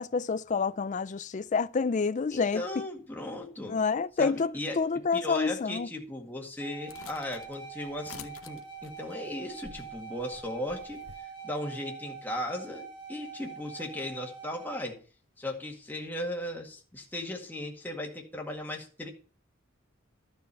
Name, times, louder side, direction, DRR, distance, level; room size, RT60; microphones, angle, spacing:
voice 1, 0.0-2.8 3.7-5.9, left 5 dB, 35° left, 0.4 m, -28 dB
voice 2, 2.3-3.8 4.2-4.9 5.1-11.0 11.4-15.0 15.4-19.1, left 1 dB, 10° left, 1.9 m, -37 dB
sound 1, 6.6-14.9, right 6 dB, 25° right, 2.0 m, -44 dB
sound 2, 6.9-11.2, left 6 dB, 80° left, 0.9 m, -50 dB
12.0 x 6.3 x 5.7 m
head